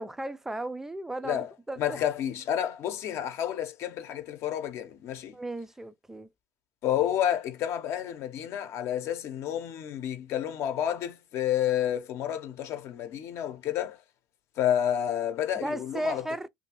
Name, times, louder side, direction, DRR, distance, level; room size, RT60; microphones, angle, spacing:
voice 1, 0.0-2.0 5.3-6.3 15.6-16.5, right 1 dB, 5° right, 0.4 m, -35 dB
voice 2, 1.8-5.4 6.8-14.0 14.6-16.2, left 10 dB, 55° left, 0.7 m, -30 dB
2.6 x 2.5 x 2.9 m
supercardioid pair, 95°, 6 cm